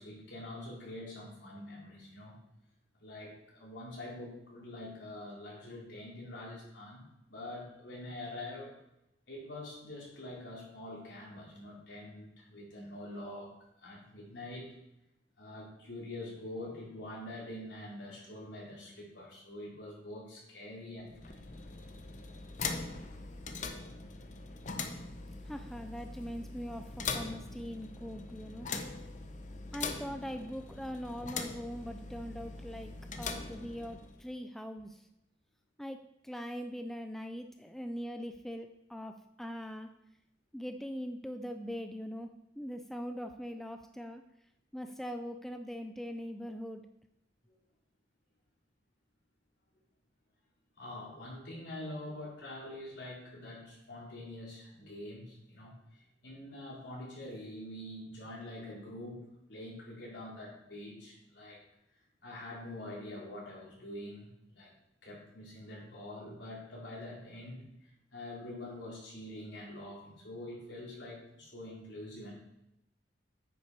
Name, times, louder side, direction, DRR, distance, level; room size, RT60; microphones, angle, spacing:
voice 1, 0.0-2.4 3.0-8.7 9.3-13.5 13.8-14.7 15.4-21.5 50.8-59.2 59.5-61.6 62.2-64.7 65.0-72.3, left 1 dB, 70° left, -5 dB, 3.5 m, -45 dB
sound 1, 21.0-34.3, left 4 dB, 40° left, 0.7 m, -42 dB
voice 2, 25.4-28.7 29.7-35.1 35.8-39.9 40.5-44.2 44.7-46.8, equal, ahead, 6 dB, 0.4 m, -41 dB
8.9 x 5.8 x 4.6 m, 0.85 s
head